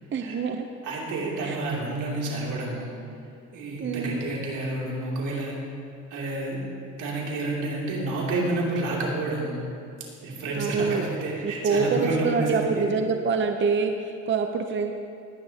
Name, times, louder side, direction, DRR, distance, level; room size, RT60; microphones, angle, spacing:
voice 1, 0.1-0.7 1.4-1.6 3.8-4.2 10.6-11.0 11.4-14.9, right 5 dB, 40° right, 5 dB, 0.7 m, -26 dB
voice 2, 0.8-2.9 3.5-5.6 6.1-6.7 7.0-9.6 10.2-12.8, right 2 dB, 85° right, -4 dB, 2.9 m, -29 dB
19.5 x 10.0 x 2.9 m, 2.6 s
cardioid pair, 90°, 30 cm